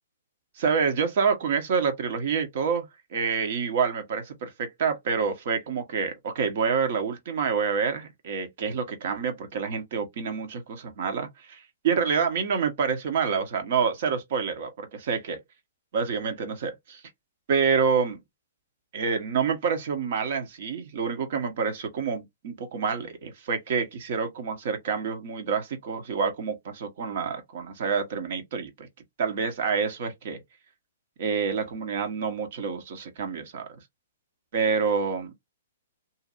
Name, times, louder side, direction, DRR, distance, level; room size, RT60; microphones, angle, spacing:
voice 1, 0.6-15.4 15.9-17.0 17.5-18.2 18.9-28.9 29.2-30.4 31.2-33.8 34.5-35.3, right 6 dB, 55° right, 1.1 m, -27 dB
2.8 x 2.6 x 2.5 m
hypercardioid pair, 125°, 0 cm